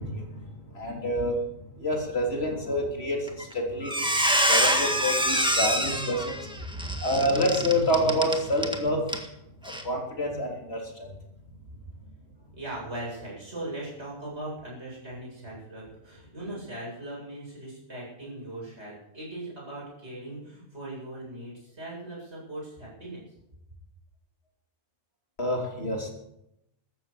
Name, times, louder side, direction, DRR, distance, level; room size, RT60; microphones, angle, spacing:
voice 1, 0.0-9.0 9.6-11.1 25.4-26.1, equal, 50° left, 1 dB, 3.6 m, -28 dB
Squeak, 3.3-3.5 3.8-8.8 9.1-9.3 9.7-9.8, equal, 5° right, 1.7 m, -25 dB
voice 2, 12.5-23.2, right 1 dB, 55° right, -4 dB, 8.4 m, -39 dB
14.5 x 13.0 x 7.0 m, 0.83 s
omnidirectional pair, 1.3 m